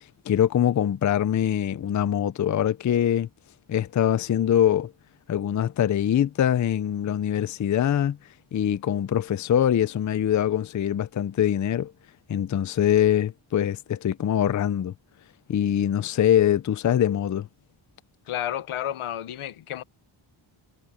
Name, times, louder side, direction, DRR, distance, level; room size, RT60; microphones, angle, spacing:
voice 1, 0.3-3.3 3.7-4.9 5.3-8.2 8.5-11.9 12.3-14.9 15.5-17.5, left 10 dB, 40° left, 0.5 m, -23 dB
voice 2, 18.3-19.8, left 11 dB, 80° left, 1.1 m, -31 dB
wide cardioid pair, 150°, 49 cm